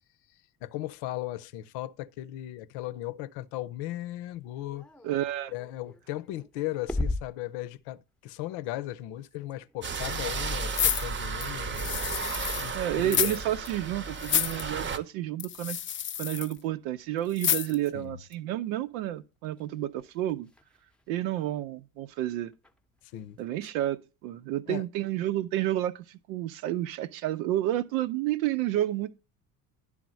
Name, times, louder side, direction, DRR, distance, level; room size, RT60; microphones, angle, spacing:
voice 1, 0.6-4.8 5.5-12.0 12.6-13.4 17.9-18.2 23.1-23.4 24.7-24.8, left 15 dB, 65° left, 0.8 m, -37 dB
sound 1, 4.3-15.4 15.9-18.6 18.9-23.6, left 2 dB, ahead, 0.8 m, -42 dB
voice 2, 5.0-5.5 12.7-15.8 16.2-20.5 21.1-22.5 23.4-29.1, right 13 dB, 70° right, 0.8 m, -30 dB
sound 2, 9.8-15.0, right 4 dB, 25° right, 0.8 m, -34 dB
sound 3, 10.7-12.7 13.0-13.4 13.7-13.8 14.2-14.6 15.4-16.5 17.4-17.9 18.3-18.4, left 10 dB, 30° left, 0.5 m, -29 dB
11.0 x 3.6 x 6.3 m
hypercardioid pair, 65°, 43 cm